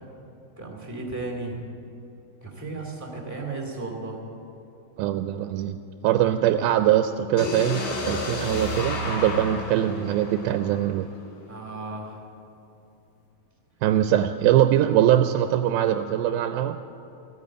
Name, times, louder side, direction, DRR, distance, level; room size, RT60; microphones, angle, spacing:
voice 1, 0.6-1.6 2.4-4.2 11.5-12.2, right 3 dB, 5° right, -1 dB, 1.5 m, -34 dB
voice 2, 5.0-5.8 6.0-11.1 13.8-16.8, right 11 dB, 85° right, 8 dB, 2.4 m, -22 dB
sound 1, 7.4-11.3, left 2 dB, 65° left, 3.7 m, -31 dB
15.5 x 9.6 x 8.6 m, 2.9 s
omnidirectional pair, 4.3 m